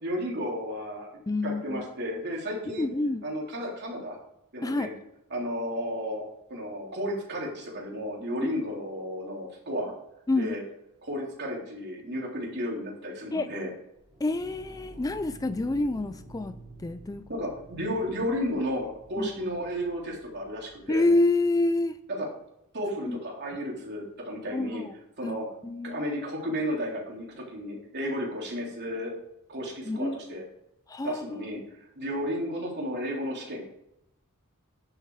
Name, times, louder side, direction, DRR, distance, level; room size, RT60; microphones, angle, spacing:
voice 1, 0.0-1.1 1.4-2.8 3.2-4.2 4.5-4.9 5.3-6.2 6.5-9.9 10.4-10.6 11.0-13.7 17.3-21.1 22.1-22.3 22.7-24.8 25.2-25.5 25.8-29.1 29.5-30.4 31.0-31.6 32.0-33.7, equal, 50° right, -2 dB, 3.4 m, -33 dB
voice 2, 1.3-1.8 2.7-3.3 4.6-4.9 8.4-8.5 10.3-10.5 13.3-13.5 14.2-16.5 16.8-17.2 19.2-19.3 20.9-22.0 23.1-23.2 24.5-24.9 25.2-25.4 25.6-26.0 29.9-30.4 30.9-31.5, left 2 dB, 15° left, 11 dB, 0.4 m, -27 dB
sound 1, 14.0-21.2, right 1 dB, 25° right, 1.5 m, -50 dB
10.5 x 8.0 x 4.8 m, 0.82 s
head